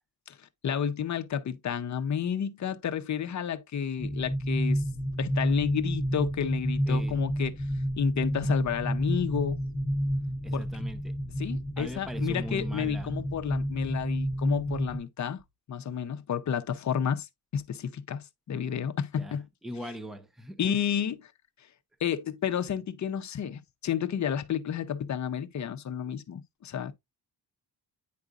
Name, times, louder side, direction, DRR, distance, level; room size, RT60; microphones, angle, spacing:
voice 1, 0.6-4.8 5.2-7.6 8.0-9.6 10.5-10.7 11.4-15.4 15.7-19.5 19.8-19.9 20.6-21.3 22.0-26.9, left 8 dB, 45° left, 0.7 m, -31 dB
sound 1, 4.0-15.0, equal, 25° left, 1.3 m, -30 dB
voice 2, 6.9-7.2 10.4-11.1 11.8-13.1 19.2-19.3 19.6-20.8, equal, ahead, 0.6 m, -40 dB
9.5 x 4.8 x 2.5 m
wide cardioid pair, 175°, 40 cm